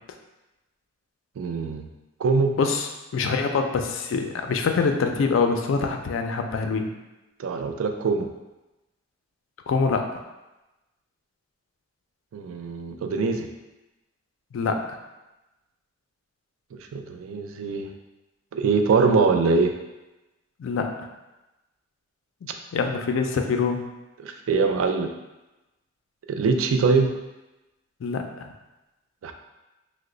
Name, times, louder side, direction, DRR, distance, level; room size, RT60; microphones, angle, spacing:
voice 1, 1.4-1.9 2.2-2.5 7.4-8.3 12.3-13.5 16.7-17.9 18.5-19.7 24.2-25.1 26.3-27.1 29.2-29.3, right 4 dB, 85° right, 5 dB, 0.3 m, -23 dB
voice 2, 2.6-6.9 9.7-10.1 14.5-15.0 20.6-20.9 22.7-23.9 28.0-28.5, left 4 dB, 75° left, 5 dB, 0.3 m, -25 dB
2.9 x 2.0 x 3.7 m, 1.0 s
head